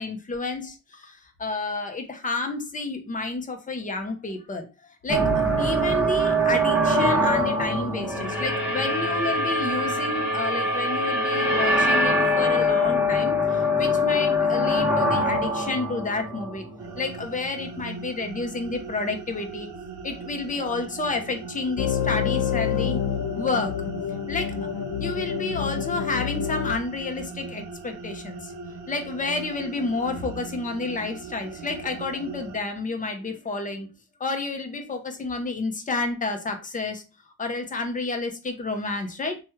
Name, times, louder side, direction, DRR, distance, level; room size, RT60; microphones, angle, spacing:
voice 1, 0.0-16.6 17.0-19.7 20.0-23.0 23.4-23.8 24.3-24.7 25.0-28.5 28.9-33.9 34.2-37.0 37.4-39.4, left 3 dB, 25° left, 5 dB, 0.7 m, -30 dB
sound 1, 5.1-17.2, equal, 5° right, 0.9 m, -23 dB
sound 2, 16.8-32.6, right 4 dB, 75° right, 0.8 m, -39 dB
sound 3, 21.8-26.8, left 8 dB, 60° left, 0.4 m, -28 dB
3.0 x 2.3 x 3.0 m, 0.30 s
cardioid pair, 90°, 30 cm